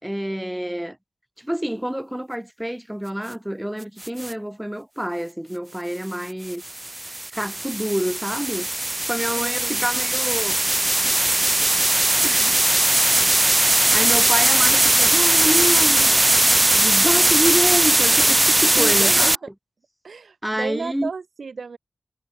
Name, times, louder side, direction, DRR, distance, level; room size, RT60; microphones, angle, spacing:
voice 1, 0.0-1.0 1.4-6.6 7.0-8.7 9.1-10.6 11.0-11.7 12.2-12.7 13.3-16.3 16.7-19.4 20.4-21.1, equal, 5° right, 2.5 m, -28 dB
sound 1, 4.0-4.3 6.5-19.4, right 1 dB, 20° right, 0.9 m, -19 dB
voice 2, 9.4-9.9 18.7-19.5 20.0-21.8, right 5 dB, 80° right, 3.2 m, -33 dB
wide cardioid pair, 90°, 0 cm